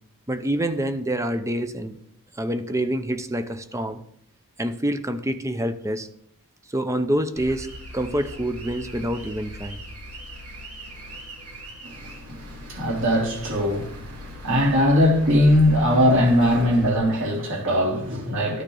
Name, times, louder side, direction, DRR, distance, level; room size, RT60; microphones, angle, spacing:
voice 1, 0.3-2.0 2.4-4.0 4.6-6.1 6.7-7.7 7.9-9.8, right 1 dB, 15° right, 0.7 m, -26 dB
sound 1, 7.4-16.9, left 1 dB, 85° right, 2.7 m, -40 dB
voice 2, 11.8-18.6, equal, 60° right, 3.4 m, -21 dB
13.5 x 9.5 x 3.9 m
head